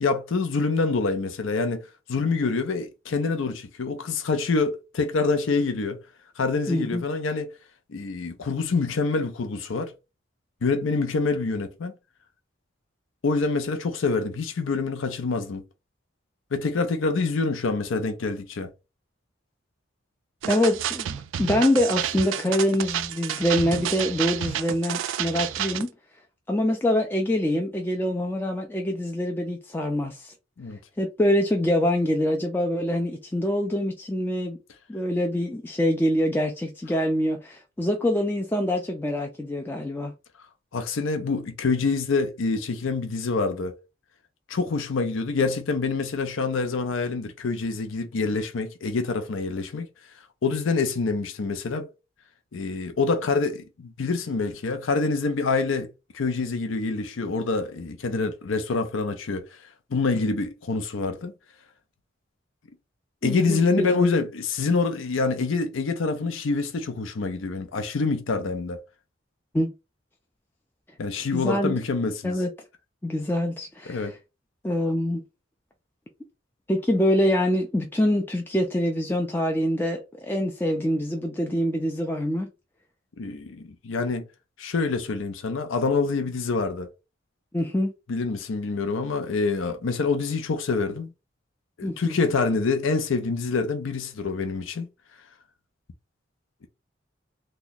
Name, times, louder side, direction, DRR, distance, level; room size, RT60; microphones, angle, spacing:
voice 1, 0.0-6.0 6.4-7.6 7.9-9.9 10.6-11.9 13.2-15.6 16.5-18.7 30.6-30.8 40.7-43.8 44.5-49.9 50.4-51.9 52.5-55.9 56.1-59.6 59.9-61.3 63.2-68.8 71.0-72.4 73.9-74.1 83.2-84.3 84.6-86.9 88.1-91.1 91.8-94.9, left 4 dB, 85° left, 0.5 m, -26 dB
voice 2, 6.7-7.0 20.5-21.1 21.4-25.9 26.5-30.3 31.0-34.6 34.9-40.1 63.2-64.1 69.5-69.7 71.3-71.8 72.2-72.5 73.0-74.2 74.6-75.2 76.7-82.5 87.5-87.9 91.8-92.2, left 1 dB, 10° left, 0.3 m, -25 dB
sound 1, 20.4-25.9, right 10 dB, 80° right, 0.3 m, -30 dB
2.9 x 2.2 x 4.0 m
head